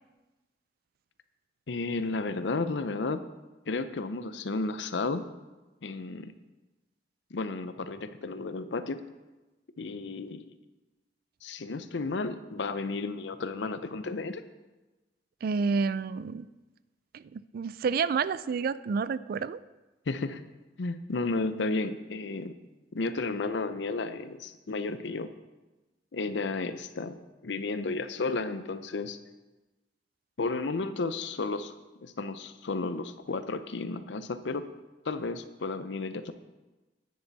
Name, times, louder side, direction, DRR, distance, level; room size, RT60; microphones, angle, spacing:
voice 1, 1.7-3.2 3.7-5.3 5.8-6.3 7.3-9.0 9.8-10.5 11.4-14.4 20.1-20.4 20.8-22.6 22.9-25.3 26.1-27.2 27.4-29.2 30.4-31.7 32.0-34.7 35.1-36.3, left 3 dB, 75° left, 11 dB, 0.6 m, -33 dB
voice 2, 15.4-16.5 17.1-19.6, right 5 dB, 55° right, 17 dB, 0.3 m, -29 dB
10.0 x 9.7 x 4.1 m, 1.1 s
head